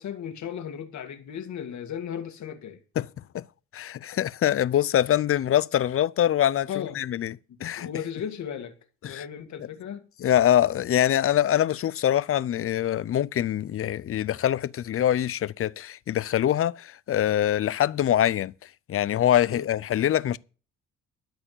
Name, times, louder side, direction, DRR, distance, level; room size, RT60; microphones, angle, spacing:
voice 1, 0.0-2.8 6.7-7.0 7.8-8.7 9.1-10.0 19.5-19.7, left 8 dB, 70° left, 2.0 m, -35 dB
voice 2, 3.7-7.3 7.6-7.9 9.0-9.3 9.6-9.7 10.2-18.5 18.9-20.4, left 11 dB, 50° left, 0.5 m, -24 dB
13.0 x 4.8 x 8.6 m
cardioid pair, 90°, 30 cm